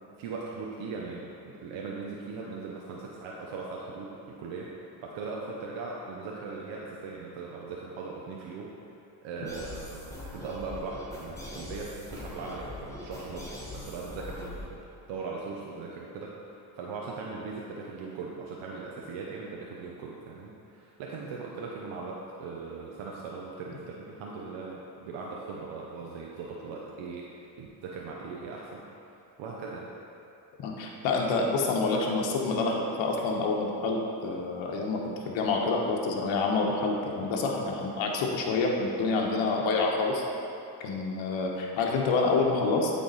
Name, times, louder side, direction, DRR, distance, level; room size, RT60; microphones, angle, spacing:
voice 1, 0.2-4.7 5.0-8.7 9.2-14.8 15.1-28.8 29.4-29.9, right 4 dB, 75° right, -3 dB, 0.9 m, -39 dB
sound 1, 9.5-14.7, left 2 dB, 5° left, 1.2 m, -42 dB
voice 2, 30.6-40.2 40.8-42.9, left 3 dB, 70° left, -1 dB, 1.1 m, -27 dB
8.6 x 3.6 x 4.0 m, 2.8 s
supercardioid pair, 75°, 48 cm